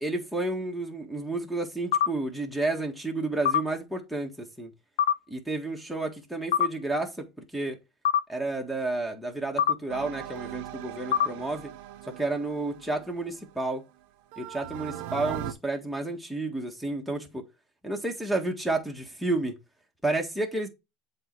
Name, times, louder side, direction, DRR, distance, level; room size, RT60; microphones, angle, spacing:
voice 1, 0.0-4.7 5.3-7.2 7.5-7.8 8.3-11.7 12.2-13.8 14.4-17.4 17.8-19.5 20.0-20.7, right 2 dB, ahead, 1.6 m, -31 dB
sound 1, 1.9-2.1 3.4-3.6 5.0-5.2 6.5-6.7 8.0-8.2 9.6-9.8 11.1-11.3, left 9 dB, 90° left, 0.4 m, -23 dB
sound 2, 9.9-13.7 14.3-15.5, right 13 dB, 75° right, 0.8 m, -39 dB
7.8 x 3.2 x 4.6 m
supercardioid pair, 125°, 0 cm